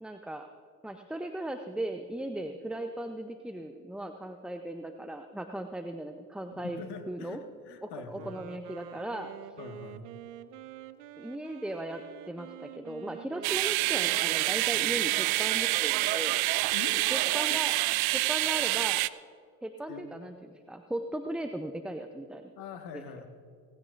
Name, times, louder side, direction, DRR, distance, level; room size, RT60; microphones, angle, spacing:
voice 1, 0.0-0.5 0.8-7.4 7.8-9.6 11.2-16.4 17.1-17.7 18.1-19.0 19.6-22.5 22.9-23.0, right 1 dB, ahead, 6 dB, 0.6 m, -37 dB
voice 2, 6.5-8.4 9.6-10.0 16.7-17.0 17.5-17.6 19.9-20.0 22.6-23.3, left 6 dB, 50° left, 6 dB, 1.7 m, -43 dB
Wind instrument woodwind instrument, 8.1-16.0, right 11 dB, 65° right, 0.8 m, -48 dB
sound 1, 13.4-19.1, right 20 dB, 50° right, 0.5 m, -27 dB
18.0 x 16.0 x 2.6 m, 2.3 s
hypercardioid pair, 70°, 50 cm